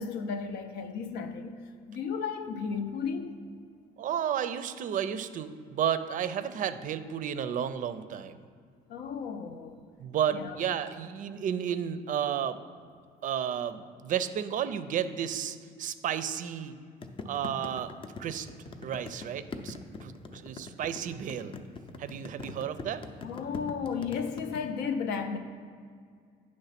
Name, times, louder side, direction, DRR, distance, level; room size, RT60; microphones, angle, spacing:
voice 1, 0.0-1.6 1.9-3.3 8.9-9.8 10.3-10.6 23.2-25.4, left 6 dB, 80° left, 0.6 m, -34 dB
voice 2, 4.0-8.4 10.0-12.6 13.2-16.8 17.3-17.9 18.2-18.5 18.8-19.8 20.0-21.6 22.0-23.0, right 9 dB, 50° right, 0.4 m, -32 dB
sound 1, 17.0-24.6, left 4 dB, 30° left, 0.5 m, -42 dB
9.2 x 3.2 x 5.8 m
cardioid pair, 110°, 17 cm